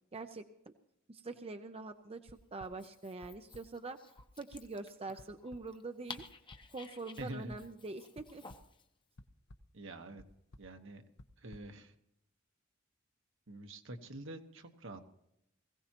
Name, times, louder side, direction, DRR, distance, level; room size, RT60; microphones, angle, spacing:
voice 1, 0.1-0.7 1.1-4.0 4.4-6.2 6.7-8.4, right 3 dB, 30° right, 7 dB, 0.6 m, -44 dB
sound 1, 2.3-2.7 3.2-3.6 4.2-4.3 4.5-4.6 5.2-5.3 5.5-5.6 6.2-6.6 7.2-7.6 8.2-8.7 9.2-9.6 10.2-10.3 10.5-10.7 11.2-11.6, left 1 dB, 55° left, 0.8 m, -54 dB
Dog, 2.6-8.9, left 4 dB, 25° left, 0.9 m, -54 dB
voice 2, 7.2-7.6 9.7-10.2 10.6-11.0 11.4-11.9 13.5-15.0, right 1 dB, 65° right, 6 dB, 1.3 m, -46 dB
21.0 x 16.0 x 3.0 m, 0.79 s
head